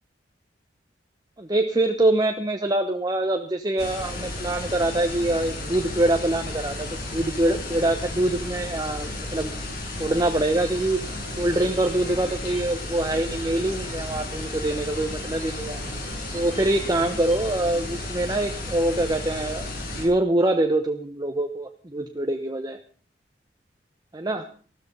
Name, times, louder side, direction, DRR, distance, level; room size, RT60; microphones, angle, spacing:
voice 1, 1.4-9.5 10.0-11.0 11.4-15.8 16.3-22.8 24.1-24.5, right 1 dB, 20° right, 5 dB, 1.0 m, -24 dB
sound 1, 3.8-20.0, left 2 dB, 60° left, 6.2 m, -33 dB
sound 2, 10.1-18.1, right 3 dB, 50° right, 1.9 m, -45 dB
14.5 x 13.0 x 5.4 m, 0.43 s
head